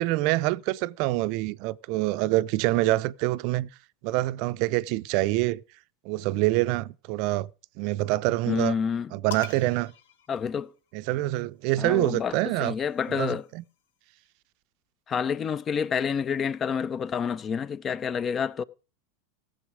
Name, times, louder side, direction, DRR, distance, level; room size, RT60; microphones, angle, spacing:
voice 1, 0.0-3.7 4.0-5.6 6.0-7.5 7.8-8.8 9.1-9.9 10.9-12.7 13.1-13.6, right 18 dB, 55° right, 0.5 m, -26 dB
voice 2, 8.5-9.1 10.3-10.7 11.8-13.4 15.1-18.6, left 7 dB, 25° left, 0.6 m, -28 dB
sound 1, 9.3-11.1 12.2-13.9, left 8 dB, 75° left, 1.2 m, -45 dB
16.5 x 7.0 x 4.9 m
hypercardioid pair, 115°, 0 cm